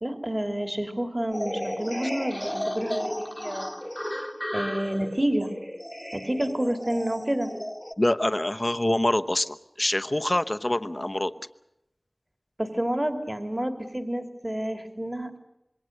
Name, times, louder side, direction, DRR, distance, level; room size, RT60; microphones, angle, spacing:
voice 1, 0.0-3.7 4.5-5.5 6.1-7.5 12.6-15.4, right 1 dB, 30° right, 5 dB, 2.6 m, -29 dB
sound 1, 1.3-7.9, equal, 10° left, 1.4 m, -34 dB
voice 2, 8.0-11.3, left 1 dB, 40° left, 11 dB, 1.0 m, -25 dB
26.5 x 22.0 x 6.6 m, 0.89 s
wide cardioid pair, 40°, 0 cm